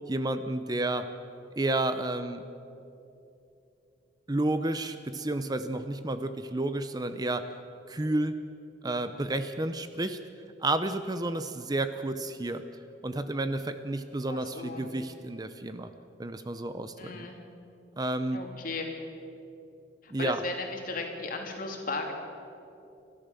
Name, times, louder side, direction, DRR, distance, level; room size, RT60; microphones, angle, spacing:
voice 1, 0.1-1.1 1.6-2.4 4.3-7.5 7.9-8.3 8.8-10.2 10.6-12.6 13.0-15.9 16.2-17.3 18.0-18.4 20.1-20.4, right 2 dB, 20° right, 10 dB, 0.7 m, -31 dB
voice 2, 14.3-14.9 17.0-17.4 18.3-18.9 20.0-22.1, left 3 dB, 50° left, 2 dB, 2.9 m, -36 dB
30.0 x 12.5 x 6.9 m, 2.7 s
head